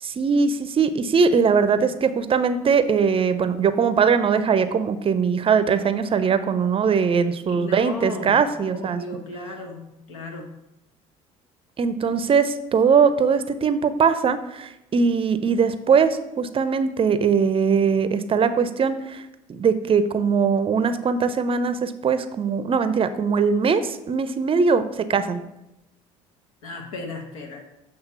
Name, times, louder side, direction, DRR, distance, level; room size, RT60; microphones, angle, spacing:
voice 1, 0.0-9.0 11.8-19.2 19.5-25.4, right 6 dB, 30° right, 11 dB, 0.5 m, -21 dB
voice 2, 7.6-8.3 8.6-10.5 26.6-27.6, left 3 dB, 75° left, 3 dB, 1.1 m, -35 dB
7.9 x 3.3 x 5.6 m, 0.90 s
hypercardioid pair, 65°, 17 cm